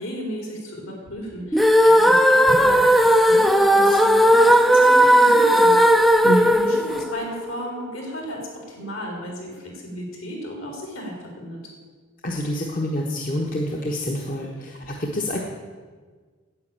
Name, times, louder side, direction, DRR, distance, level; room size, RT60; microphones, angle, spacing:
voice 1, 0.0-5.8 6.4-11.6, equal, 70° left, 0 dB, 4.0 m, -34 dB
sound 1, 1.5-7.7, equal, ahead, 0.4 m, -16 dB
voice 2, 12.2-15.4, equal, 40° left, 0 dB, 1.2 m, -26 dB
9.6 x 8.9 x 8.8 m, 1.5 s
head